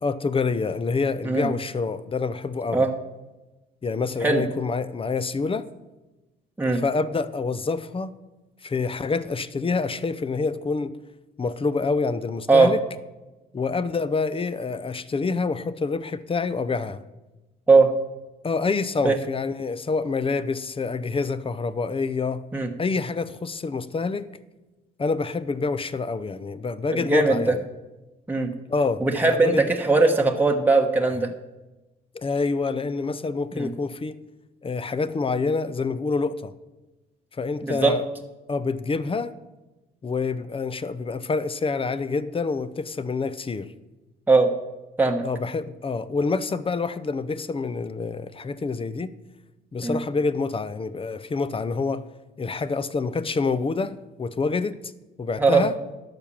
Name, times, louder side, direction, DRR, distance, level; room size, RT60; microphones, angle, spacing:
voice 1, 0.0-2.9 3.8-5.7 6.7-8.2 8.6-11.0 11.4-12.8 13.5-17.0 18.4-22.4 22.8-24.3 25.0-27.6 28.7-29.7 32.1-34.2 34.6-36.5 37.4-38.0 38.5-39.4 40.0-43.7 45.2-49.1 49.7-52.0 52.4-54.8 55.2-55.7, left 4 dB, 25° left, 15 dB, 0.6 m, -27 dB
voice 2, 26.9-27.5 28.3-28.5 29.0-31.3 33.6-33.7 37.6-37.9 44.3-44.5 45.0-45.2 49.8-50.0 55.4-55.6, right 3 dB, 10° right, 2 dB, 1.0 m, -19 dB
12.0 x 5.9 x 7.2 m, 1.1 s
cardioid pair, 90°, 20 cm